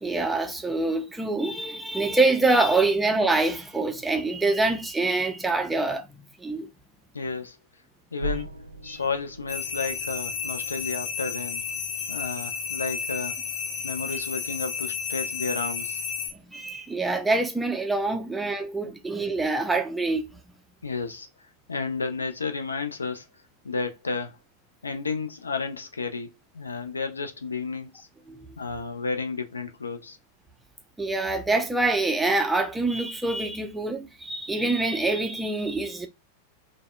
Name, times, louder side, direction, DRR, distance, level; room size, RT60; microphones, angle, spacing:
voice 1, 0.0-6.1 6.4-6.7 8.9-9.0 16.5-20.3 28.3-28.6 31.0-36.1, right 2 dB, 5° right, 0.4 m, -25 dB
voice 2, 7.1-7.6 8.1-8.5 8.8-11.6 12.1-13.4 13.8-16.0 18.8-18.9 20.8-21.3 21.7-23.3 23.6-24.4 24.8-28.1 28.6-30.2, left 4 dB, 75° left, 0.4 m, -32 dB
sound 1, 8.2-12.9, right 2 dB, 90° right, 0.5 m, -40 dB
sound 2, 9.5-16.3, left 6 dB, 50° left, 0.8 m, -32 dB
3.4 x 2.0 x 2.2 m
figure-of-eight pair, 90°, 0 cm